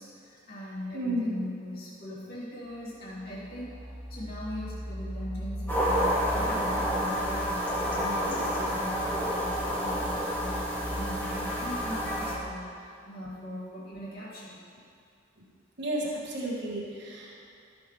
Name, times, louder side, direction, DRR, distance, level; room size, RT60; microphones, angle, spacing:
voice 1, 0.0-3.8 4.1-14.6, left 1 dB, 50° left, -8 dB, 2.6 m, -40 dB
voice 2, 0.9-1.4 15.4-15.5 15.8-17.3, right 1 dB, 60° right, -4 dB, 1.6 m, -32 dB
sound 1, 2.7-2.8 3.0-11.2, equal, 25° right, 0.9 m, -40 dB
sound 2, 5.7-12.3, equal, 10° left, 2.1 m, -29 dB
14.0 x 7.0 x 3.3 m, 2.3 s
head